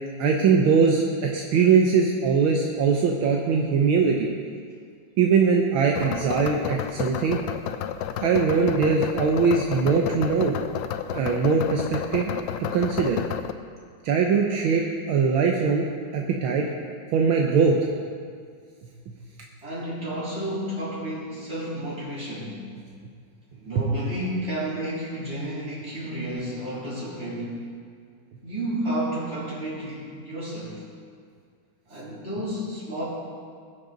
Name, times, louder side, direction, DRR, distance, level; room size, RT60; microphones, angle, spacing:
voice 1, 0.2-4.3 5.2-7.4 8.2-10.5 11.1-12.4 12.7-13.2 14.0-15.9 16.1-16.6 17.1-17.9 23.7-23.8, right 5 dB, 80° right, 0 dB, 1.7 m, -21 dB
sound 1, 6.0-13.5, left 10 dB, 75° left, 1.2 m, -31 dB
voice 2, 19.6-22.6 23.5-27.6 28.4-30.8 31.9-33.0, right 1 dB, 30° right, -9 dB, 4.2 m, -31 dB
20.5 x 7.9 x 3.9 m, 2.1 s
omnidirectional pair, 2.3 m